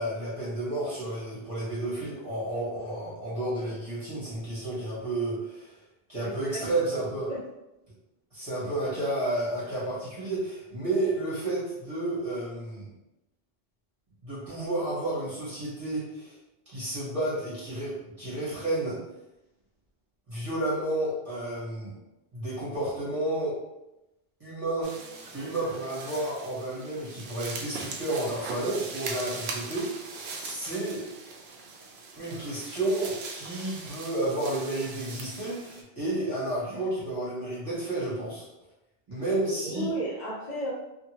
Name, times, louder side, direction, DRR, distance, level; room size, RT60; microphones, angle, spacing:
voice 1, 0.0-5.7 6.1-7.3 8.3-12.9 14.2-16.3 16.7-19.0 20.3-21.9 22.3-23.5 24.4-24.9 25.3-31.0 32.2-38.4 39.1-39.9, right 1 dB, 35° right, -10 dB, 1.2 m, -31 dB
voice 2, 6.2-6.7 7.3-7.4 39.4-40.7, right 1 dB, 45° left, -4 dB, 1.0 m, -33 dB
sound 1, 24.8-35.8, right 4 dB, 75° right, 0.8 m, -40 dB
2.7 x 2.7 x 2.8 m, 0.94 s
omnidirectional pair, 1.1 m